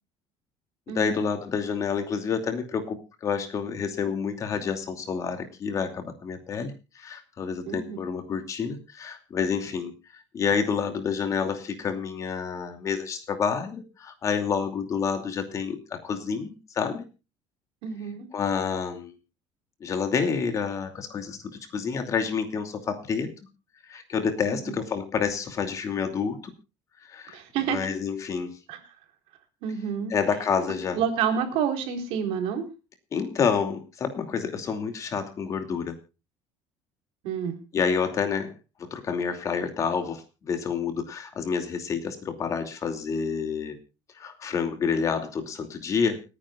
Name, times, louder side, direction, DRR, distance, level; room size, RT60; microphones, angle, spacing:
voice 1, 0.9-17.0 18.3-19.1 19.8-23.3 23.8-26.5 27.0-27.4 27.7-28.6 30.1-31.0 33.1-36.0 37.7-38.5 38.8-43.8 44.1-46.2, left 6 dB, 30° left, 7 dB, 2.6 m, -29 dB
voice 2, 7.7-8.0 17.8-18.3 24.5-24.8 27.3-27.8 28.7-28.8 29.6-30.1 30.9-32.6 37.2-37.6, right 7 dB, 65° right, 6 dB, 3.9 m, -28 dB
29.5 x 10.0 x 2.4 m, 0.30 s
cardioid pair, 170°, 11 cm